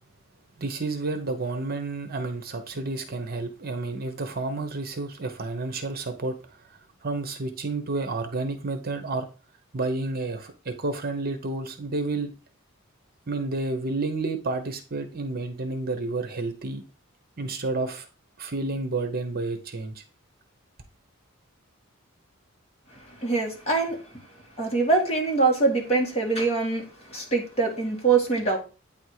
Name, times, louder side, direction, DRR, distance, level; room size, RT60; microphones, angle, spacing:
voice 1, 0.6-6.4 7.0-9.3 9.7-12.3 13.3-16.8 17.4-18.1 18.4-20.0, right 3 dB, 45° right, 8 dB, 0.9 m, -30 dB
voice 2, 23.2-24.0 24.6-28.6, right 4 dB, 30° left, -1 dB, 2.1 m, -24 dB
9.0 x 3.7 x 4.8 m, 0.34 s
head